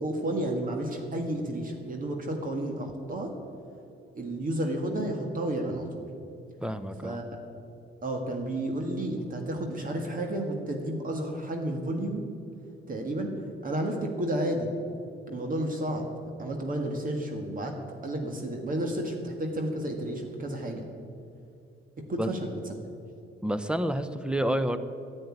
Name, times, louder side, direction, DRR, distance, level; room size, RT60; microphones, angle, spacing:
voice 1, 0.0-3.3 4.2-6.0 7.0-7.3 8.0-12.3 12.9-13.3 13.6-14.7 15.3-16.1 16.4-17.8 18.0-20.9 22.0-22.6, right 1 dB, 45° right, 3 dB, 1.7 m, -31 dB
voice 2, 6.6-7.2 22.2-22.3 23.4-24.8, right 1 dB, 5° right, 11 dB, 0.8 m, -29 dB
10.5 x 8.2 x 9.7 m, 2.5 s
cardioid pair, 90°, 20 cm